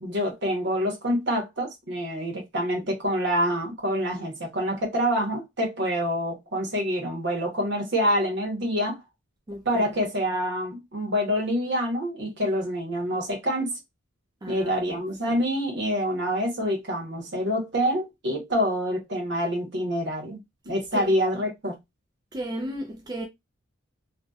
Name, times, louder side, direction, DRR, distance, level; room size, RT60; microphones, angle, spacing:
voice 1, 0.0-9.0 9.6-13.8 14.5-20.4 20.6-21.8, equal, 60° right, 0.9 m, -26 dB
voice 2, 9.5-10.0 14.4-15.0 15.3-15.4 20.9-21.1 22.3-23.3, right 1 dB, 20° right, 0.3 m, -35 dB
2.6 x 2.1 x 2.2 m
head